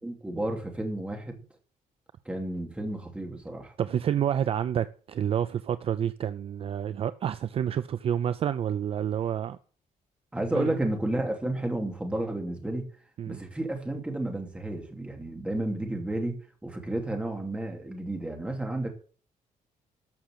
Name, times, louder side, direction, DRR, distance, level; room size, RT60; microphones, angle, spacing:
voice 1, 0.0-1.4 2.2-3.7 10.3-12.9 13.3-16.4 16.6-18.9, right 1 dB, 10° right, 2.8 m, -31 dB
voice 2, 3.8-9.6 10.5-10.7 13.2-13.4, right 9 dB, 45° right, 0.5 m, -29 dB
13.0 x 6.5 x 7.6 m
cardioid pair, 160°, 14 cm